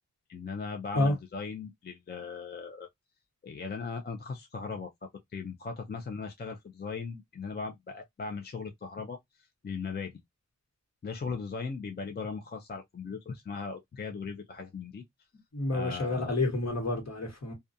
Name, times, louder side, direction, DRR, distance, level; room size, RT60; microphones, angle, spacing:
voice 1, 0.3-2.9 3.4-10.2 11.0-15.0 15.7-16.4, left 5 dB, 35° left, 0.4 m, -38 dB
voice 2, 15.5-17.5, left 2 dB, 60° left, 1.2 m, -29 dB
2.3 x 2.2 x 2.6 m
wide cardioid pair, 95°, 30 cm